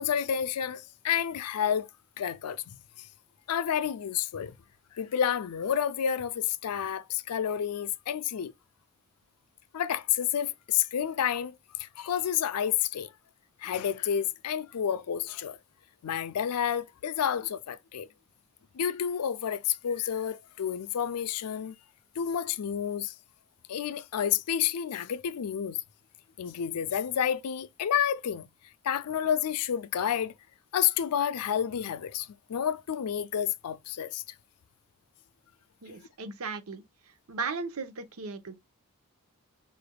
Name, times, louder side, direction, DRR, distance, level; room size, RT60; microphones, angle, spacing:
voice 1, 0.0-1.9 2.2-3.1 3.5-4.5 4.9-8.5 9.7-13.1 13.6-15.6 16.0-18.1 18.7-21.7 22.2-23.2 23.7-25.8 26.4-28.5 28.8-30.3 30.7-34.2, left 9 dB, 90° left, 0.4 m, -30 dB
voice 2, 35.8-36.8 37.3-38.6, right 4 dB, 70° right, 0.8 m, -36 dB
4.7 x 3.3 x 2.2 m
head